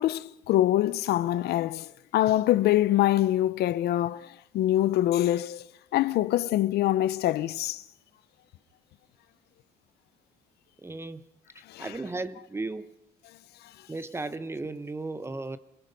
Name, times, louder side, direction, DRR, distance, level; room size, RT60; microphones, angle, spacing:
voice 1, 0.0-4.3 4.5-5.6 5.9-7.8 11.7-11.9, left 14 dB, 75° left, 0.9 m, -24 dB
voice 2, 10.8-11.2 11.8-12.9 13.9-15.6, right 3 dB, 15° right, 1.0 m, -35 dB
28.0 x 19.0 x 5.5 m
cardioid pair, 110°, 17 cm